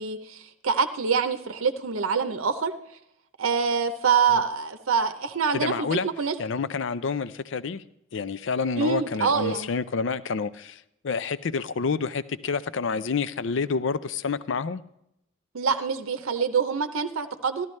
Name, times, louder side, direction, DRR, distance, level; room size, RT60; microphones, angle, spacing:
voice 1, 0.0-2.7 3.4-6.4 8.8-9.7 15.5-17.7, right 6 dB, 90° right, 7 dB, 0.7 m, -25 dB
voice 2, 5.5-6.1 6.4-7.8 8.1-14.8, left 5 dB, 65° left, 15 dB, 0.5 m, -28 dB
14.0 x 12.0 x 3.2 m, 0.79 s
head